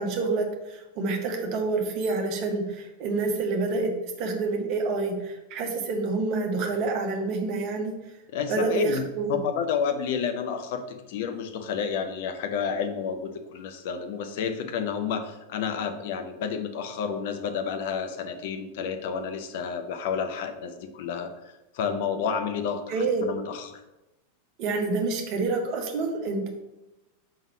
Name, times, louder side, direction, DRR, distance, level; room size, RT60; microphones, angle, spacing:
voice 1, 0.0-8.0 8.5-9.3 22.9-23.2 24.6-26.5, right 3 dB, 40° right, 3 dB, 1.3 m, -28 dB
voice 2, 8.3-9.0 9.3-23.8, left 6 dB, 50° left, 7 dB, 0.7 m, -30 dB
5.5 x 3.7 x 5.9 m, 1.0 s
figure-of-eight pair, 90°, 0 cm